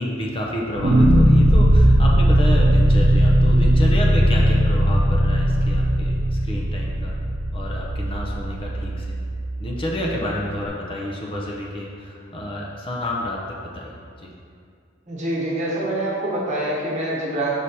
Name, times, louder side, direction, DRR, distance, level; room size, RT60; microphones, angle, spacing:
voice 1, 0.0-7.1 7.5-9.2 9.6-14.3, left 1 dB, 25° left, -2 dB, 0.6 m, -30 dB
sound 1, 0.8-9.9, equal, 85° right, 0.8 m, -18 dB
voice 2, 15.1-17.6, right 1 dB, 35° right, -5 dB, 1.3 m, -25 dB
5.6 x 4.9 x 4.1 m, 2.3 s
head